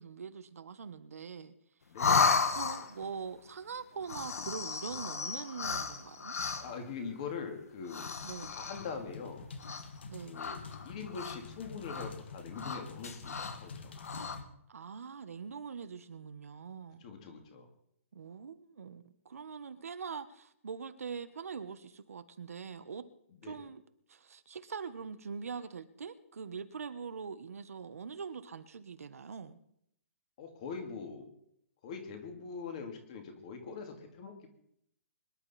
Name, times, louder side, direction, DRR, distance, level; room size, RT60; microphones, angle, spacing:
voice 1, 0.0-1.5 2.6-6.3 8.2-8.5 10.1-10.4 14.7-17.0 18.1-23.1 23.4-23.8 24.1-29.6, right 6 dB, 75° right, 1.3 m, -43 dB
voice 2, 1.9-2.2 6.6-8.3 8.5-9.5 10.2-10.6 10.8-14.0 17.0-17.7 23.4-23.6 30.4-31.3 31.8-34.5, left 5 dB, 25° left, 2.3 m, -43 dB
sound 1, 2.0-3.1 4.0-6.8 7.8-9.0 9.6-10.0 10.3-11.5 11.8-12.1 12.5-13.6 14.0-14.4, left 5 dB, 85° left, 2.0 m, -33 dB
sound 2, 8.2-14.4, left 4 dB, 45° left, 1.8 m, -48 dB
24.0 x 11.0 x 4.3 m
hypercardioid pair, 180°, 8 cm